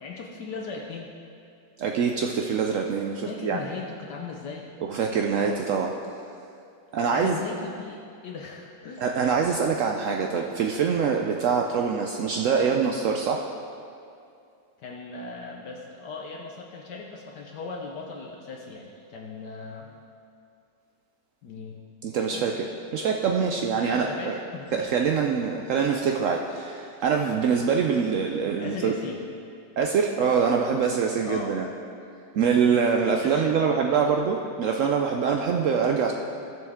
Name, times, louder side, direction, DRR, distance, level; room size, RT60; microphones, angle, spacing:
voice 1, 0.0-1.1 3.3-4.7 7.1-9.1 14.8-19.9 21.4-21.8 22.3-22.6 23.7-24.9 28.6-29.2 31.2-31.6 33.0-34.2, left 4 dB, 70° left, -1 dB, 1.4 m, -38 dB
voice 2, 1.8-3.6 4.8-5.9 6.9-7.4 9.0-13.5 22.0-22.7 22.9-24.3 24.7-28.9 29.8-31.7 32.3-36.1, right 6 dB, 85° right, 2 dB, 0.6 m, -24 dB
17.0 x 6.3 x 3.5 m, 2.4 s
omnidirectional pair, 2.0 m